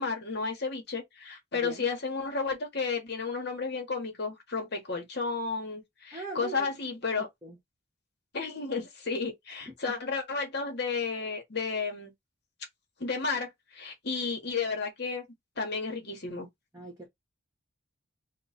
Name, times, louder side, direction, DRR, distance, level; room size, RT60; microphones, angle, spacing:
voice 1, 0.0-7.3 8.3-12.1 13.0-15.2 15.6-16.5, left 4 dB, 50° left, 1.0 m, -32 dB
voice 2, 1.5-1.8 6.1-6.7 7.2-7.6 9.6-10.0 16.7-17.1, right 2 dB, 15° right, 0.9 m, -41 dB
3.0 x 2.2 x 4.0 m
head